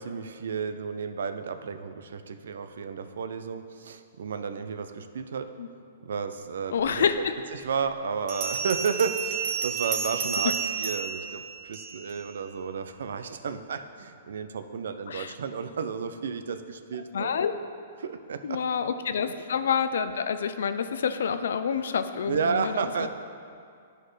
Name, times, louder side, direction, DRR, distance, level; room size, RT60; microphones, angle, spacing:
voice 1, 0.0-5.5 6.0-7.2 7.5-17.3 18.0-18.6 19.2-19.3 22.3-23.1, right 6 dB, 80° right, 9 dB, 0.4 m, -32 dB
voice 2, 6.7-7.3 15.1-15.3 17.1-17.5 18.4-22.7 23.0-23.1, left 7 dB, 75° left, 10 dB, 0.4 m, -28 dB
Bell, 8.3-12.2, right 6 dB, 40° right, 1.0 m, -31 dB
11.0 x 4.3 x 3.2 m, 2.3 s
hypercardioid pair, 140°, 0 cm